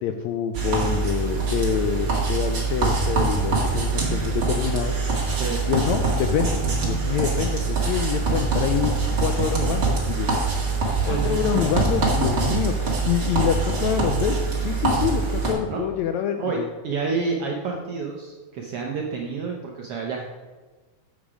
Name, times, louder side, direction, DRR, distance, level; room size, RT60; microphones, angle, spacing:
voice 1, 0.0-5.0 5.7-8.9 9.2-10.3 11.0-12.7 13.0-16.7, left 9 dB, 80° left, 6 dB, 1.6 m, -26 dB
sound 1, 0.5-15.5, right 3 dB, 40° right, 2.1 m, -24 dB
voice 2, 10.9-11.4 12.3-12.6 15.7-15.8 16.4-20.3, right 4 dB, 75° right, 0 dB, 1.4 m, -29 dB
7.8 x 7.2 x 4.9 m, 1.3 s
omnidirectional pair, 3.6 m